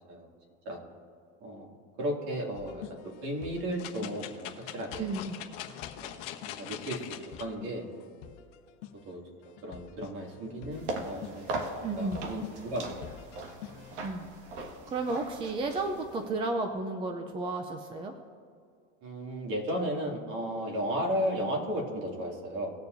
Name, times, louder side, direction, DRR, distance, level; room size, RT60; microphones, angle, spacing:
voice 1, 1.4-1.7 2.0-5.1 6.0-6.2 6.4-7.9 9.1-11.7 12.0-13.1 19.0-22.7, equal, 50° right, 0 dB, 2.4 m, -34 dB
sound 1, 2.5-14.1, left 10 dB, 80° left, 1.0 m, -48 dB
sound 2, 3.8-7.4 8.0-8.1, left 11 dB, 50° left, 1.1 m, -42 dB
voice 2, 5.0-5.4 11.8-12.2 14.0-14.3 14.6-18.1, right 3 dB, 15° right, 5 dB, 0.4 m, -33 dB
sound 3, 10.7-16.3, right 2 dB, 75° right, 1.7 m, -40 dB
19.5 x 7.1 x 2.6 m, 2.3 s
supercardioid pair, 150°, 36 cm